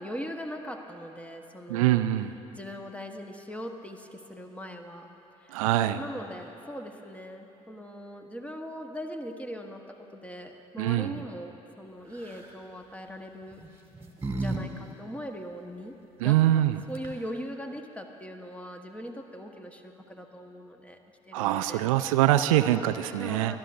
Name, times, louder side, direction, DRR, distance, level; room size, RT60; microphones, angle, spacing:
voice 1, 0.0-2.0 2.5-5.1 5.4-5.6 6.0-13.6 14.3-15.9 16.2-21.0 21.3-21.8 23.1-23.6, equal, 5° left, 4 dB, 1.1 m, -40 dB
voice 2, 1.7-2.3 5.5-6.0 10.8-11.2 16.2-16.8 21.3-23.5, right 14 dB, 75° right, 11 dB, 0.4 m, -24 dB
sound 1, 12.1-12.6 13.5-14.6 14.9-15.0 16.6-16.7 16.9-17.4, right 3 dB, 15° right, 1.7 m, -34 dB
25.0 x 11.0 x 2.6 m, 3.0 s
figure-of-eight pair, 50°, 18 cm